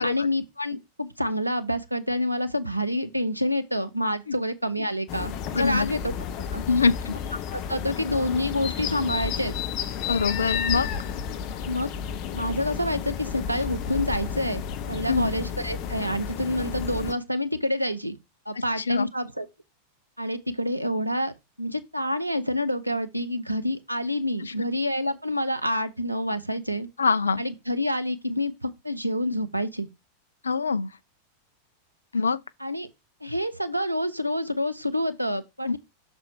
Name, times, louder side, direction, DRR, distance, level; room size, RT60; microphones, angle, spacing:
voice 1, 0.0-6.1 6.5-6.6 7.5-9.5 11.7-11.9 12.3-14.6 14.9-18.2 18.5-19.5 20.2-26.9 27.4-29.9 32.6-32.9 33.2-35.8, left 1 dB, 90° right, 0.8 m, -28 dB
sound 1, 5.1-17.1, left 8 dB, 40° left, 0.8 m, -32 dB
voice 2, 5.5-5.9 6.7-7.2 10.1-10.9 15.1-15.3 18.8-19.1 24.4-24.5 27.0-27.4 30.4-30.9 32.1-32.4 35.6-35.8, left 4 dB, 75° left, 0.4 m, -24 dB
6.3 x 4.3 x 4.6 m
figure-of-eight pair, 90°, 0 cm